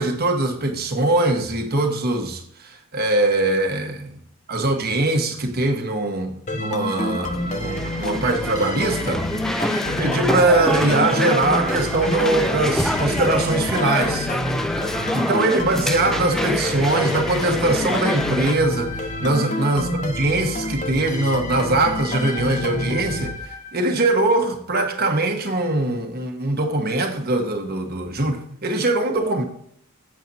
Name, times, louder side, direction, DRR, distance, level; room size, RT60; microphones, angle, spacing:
voice 1, 0.0-4.2 4.5-9.2 9.5-14.3 15.1-29.4, right 2 dB, 45° right, 1.3 m, -22 dB
sound 1, 6.5-24.0, left 2 dB, 35° left, 0.9 m, -28 dB
sound 2, 7.1-18.5, equal, ahead, 0.4 m, -26 dB
7.4 x 7.3 x 4.1 m
head